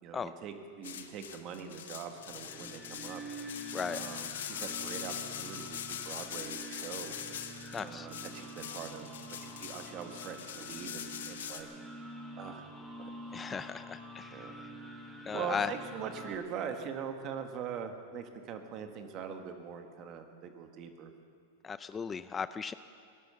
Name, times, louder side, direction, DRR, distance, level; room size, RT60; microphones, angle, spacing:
voice 1, 0.0-3.2 3.9-7.1 7.8-11.7 12.4-13.4 14.3-14.6 15.3-21.1, right 7 dB, 40° right, 6 dB, 1.6 m, -42 dB
sound 1, 0.8-11.6, left 9 dB, 80° left, 1.0 m, -43 dB
sound 2, 2.2-16.4, right 1 dB, 5° right, 2.3 m, -47 dB
voice 2, 7.7-8.1 13.3-14.7 15.2-15.7 21.6-22.7, left 6 dB, 20° left, 13 dB, 0.4 m, -37 dB
17.5 x 11.5 x 6.9 m, 2.3 s
hypercardioid pair, 120°, 0 cm